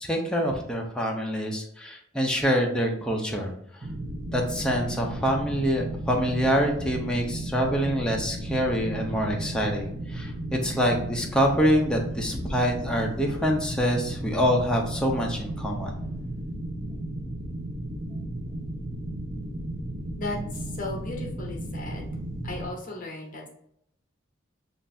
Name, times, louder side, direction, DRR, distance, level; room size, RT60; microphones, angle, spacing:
voice 1, 0.0-3.5 4.3-15.9, equal, 5° left, 0 dB, 0.6 m, -26 dB
sound 1, 3.8-22.7, right 1 dB, 30° right, 0.8 m, -34 dB
voice 2, 20.2-22.1 22.4-23.5, left 2 dB, 45° left, 0 dB, 0.8 m, -36 dB
7.3 x 2.6 x 2.6 m, 0.74 s
head